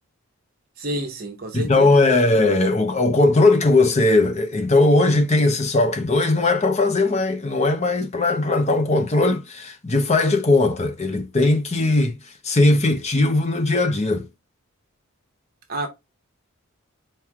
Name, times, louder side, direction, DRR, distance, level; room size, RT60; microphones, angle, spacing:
voice 1, 0.8-2.0 2.3-2.4 15.7-15.9, right 1 dB, 45° right, 0.8 m, -29 dB
voice 2, 1.5-12.2 12.4-14.3, left 2 dB, 30° left, 0.7 m, -19 dB
4.6 x 3.1 x 3.5 m
head